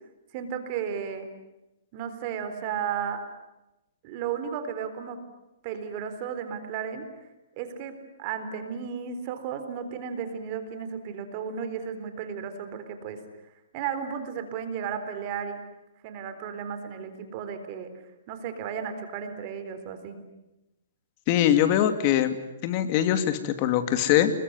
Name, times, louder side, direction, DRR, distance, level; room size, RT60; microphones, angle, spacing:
voice 1, 0.3-1.3 1.9-3.2 4.0-5.2 5.6-7.1 7.6-13.2 13.7-15.6 16.0-17.9 18.3-20.2, right 7 dB, 35° right, 9 dB, 3.8 m, -34 dB
voice 2, 21.3-22.4 22.6-24.3, left 11 dB, 35° left, 9 dB, 2.5 m, -22 dB
28.0 x 22.0 x 9.6 m, 0.93 s
hypercardioid pair, 155°, 0 cm